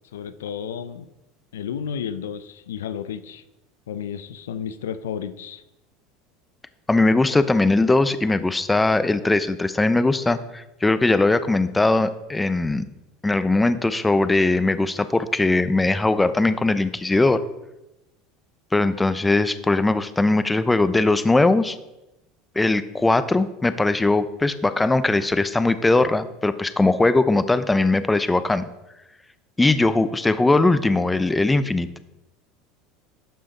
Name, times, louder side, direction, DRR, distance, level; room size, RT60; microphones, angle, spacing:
voice 1, 0.1-1.1 1.5-3.4 3.9-5.6, left 8 dB, 85° left, 13 dB, 0.5 m, -32 dB
voice 2, 6.9-12.9 13.2-17.4 18.7-21.8 22.6-28.6 29.6-31.9, left 2 dB, 10° left, 12 dB, 0.6 m, -20 dB
11.5 x 5.6 x 4.1 m, 0.96 s
hypercardioid pair, 90°, 0 cm